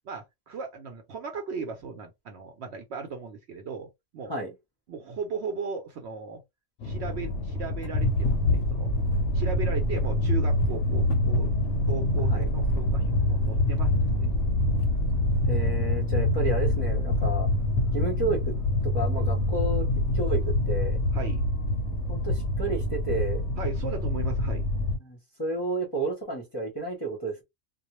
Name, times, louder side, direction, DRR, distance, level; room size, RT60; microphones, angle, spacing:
voice 1, 0.0-4.4 4.9-6.4 6.8-8.9 9.3-11.5 11.8-14.3 21.1-21.4 23.6-24.7, right 4 dB, 65° right, 0.7 m, -37 dB
sound 1, 6.8-25.0, left 1 dB, 65° left, 0.8 m, -25 dB
voice 2, 12.1-12.5 15.5-17.5 17.9-18.5 18.8-19.9 20.1-20.4 20.7-21.0 22.1-23.4 25.0-27.4, right 3 dB, 25° left, 0.6 m, -31 dB
2.2 x 2.1 x 2.9 m
omnidirectional pair, 1.4 m